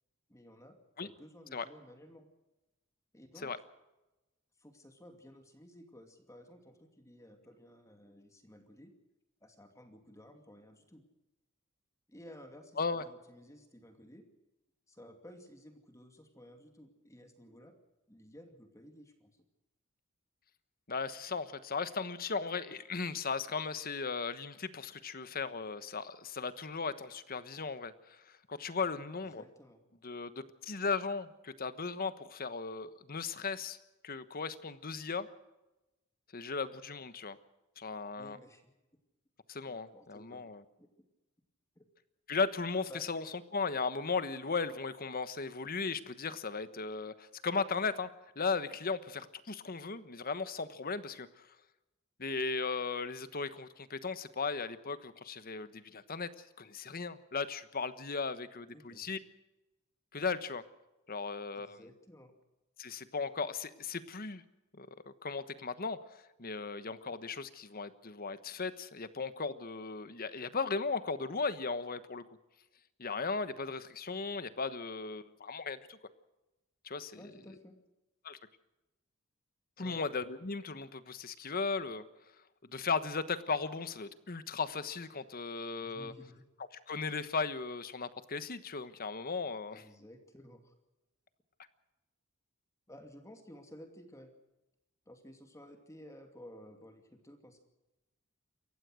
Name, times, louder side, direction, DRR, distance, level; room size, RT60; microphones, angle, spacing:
voice 1, 0.3-0.8 1.0-2.3 3.1-3.5 4.6-8.9 9.4-11.0 12.1-14.2 14.9-17.7 18.1-19.4 29.2-29.8 38.2-38.7 39.6-40.9 41.8-41.9 42.9-43.1 58.7-59.1 61.5-62.3 77.2-77.7 79.8-80.0 85.8-86.4 89.7-90.7 92.9-94.3 95.1-97.6, equal, 15° left, 5 dB, 2.5 m, -54 dB
voice 2, 20.9-29.4 30.0-33.8 34.0-35.3 36.3-37.4 37.8-38.4 39.5-40.6 42.3-43.2 43.5-48.1 48.3-51.5 52.2-56.3 56.6-59.2 60.1-60.6 61.1-61.8 62.8-64.4 64.7-72.4 73.0-76.0 76.8-77.2 78.2-78.4 79.8-82.0 82.7-86.1 86.9-89.8, left 4 dB, 45° left, 13 dB, 1.2 m, -37 dB
28.0 x 15.0 x 6.4 m, 1.0 s
head